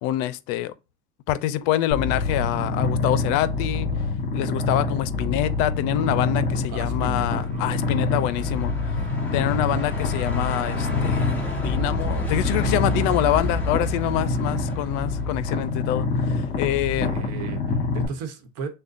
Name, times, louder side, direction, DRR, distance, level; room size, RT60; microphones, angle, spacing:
voice 1, 0.0-0.7 1.3-3.9 4.3-9.0 9.3-17.1, left 13 dB, 75° left, 0.6 m, -26 dB
Purr, 1.9-18.1, left 3 dB, 40° left, 2.6 m, -26 dB
Truck, 6.5-15.9, equal, 5° left, 1.2 m, -32 dB
voice 2, 6.7-7.8 16.7-18.7, right 5 dB, 60° right, 1.1 m, -36 dB
6.6 x 2.2 x 2.5 m
cardioid pair, 150°, 29 cm